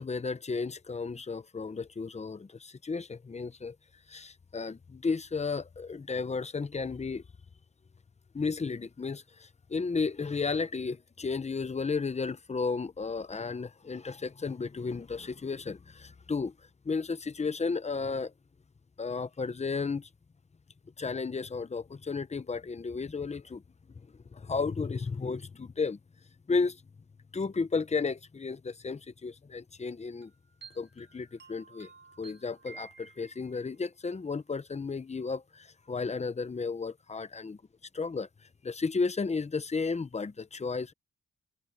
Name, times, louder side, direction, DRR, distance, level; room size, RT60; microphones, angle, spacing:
voice 1, 0.0-3.8 4.1-7.2 8.3-16.5 16.8-18.3 19.0-20.1 21.0-23.6 24.3-26.0 26.5-26.8 27.3-30.3 30.8-31.9 32.2-37.6 37.9-38.3 38.6-40.9, left 4 dB, 20° left, 0.7 m, -33 dB
sound 1, 30.2-33.7, right 5 dB, 35° right, 4.9 m, -53 dB
wide cardioid pair, 150°, 30 cm